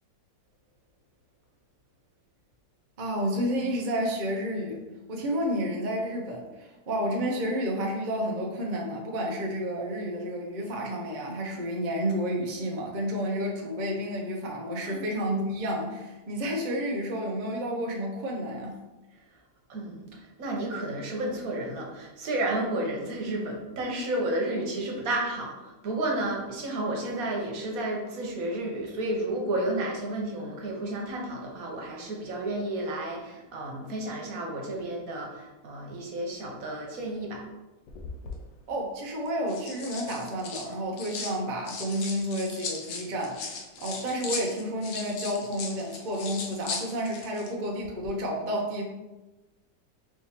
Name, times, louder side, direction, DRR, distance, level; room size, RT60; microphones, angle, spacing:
voice 1, 3.0-4.8 5.1-18.8 38.7-48.8, equal, 80° right, -1 dB, 0.4 m, -30 dB
voice 2, 19.7-20.1 20.4-37.4, right 1 dB, 60° right, -1 dB, 1.2 m, -31 dB
sound 1, 37.9-38.4 39.3-41.4 41.6-47.5 47.8-48.1, left 5 dB, 85° left, 1.4 m, -38 dB
4.6 x 3.5 x 2.9 m, 1.1 s
omnidirectional pair, 2.0 m